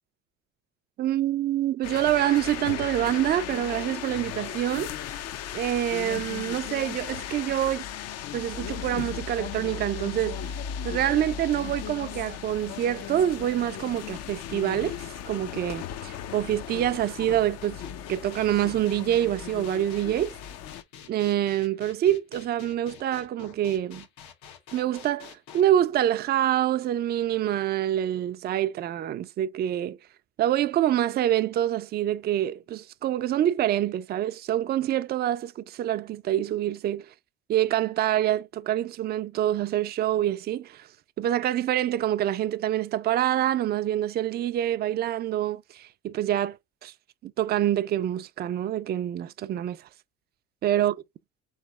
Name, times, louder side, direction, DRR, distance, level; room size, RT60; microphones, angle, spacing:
voice 1, 1.0-4.9 5.5-7.9 8.3-10.4 10.8-14.9 15.3-17.8 18.1-20.4 21.1-24.1 24.7-30.0 30.4-37.1 37.5-40.9 41.2-46.6 46.8-46.9 47.2-49.8 50.6-50.9, right 12 dB, 35° right, 0.4 m, -26 dB
sound 1, 1.8-20.8, left 9 dB, 55° left, 0.5 m, -36 dB
sound 2, 17.6-25.6, left 8 dB, 85° left, 1.0 m, -47 dB
3.5 x 3.2 x 3.4 m
cardioid pair, 110°, 30 cm